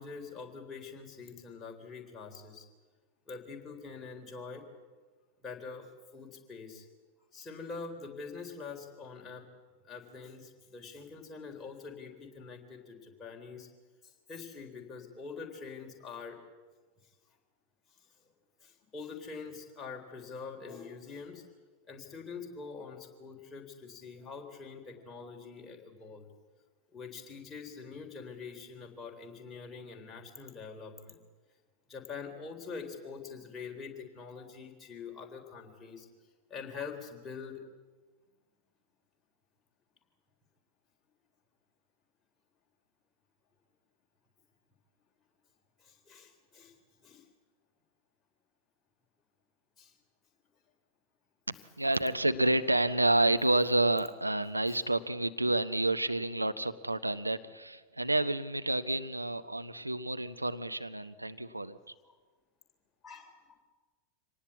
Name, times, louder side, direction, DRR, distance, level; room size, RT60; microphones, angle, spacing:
voice 1, 0.0-2.7 3.3-4.6 5.4-6.9 7.3-9.5 9.8-13.7 14.0-16.4 18.6-21.4 21.9-26.3 26.9-31.2 31.9-36.1 36.5-37.6 45.8-46.8 47.0-47.2 49.8-50.0 54.7-54.8 62.0-62.2 63.0-63.6, left 5 dB, 20° left, 2 dB, 3.8 m, -45 dB
voice 2, 51.5-61.9, right 2 dB, 85° right, 11 dB, 0.8 m, -29 dB
25.5 x 18.5 x 8.4 m, 1.4 s
figure-of-eight pair, 90°, 0 cm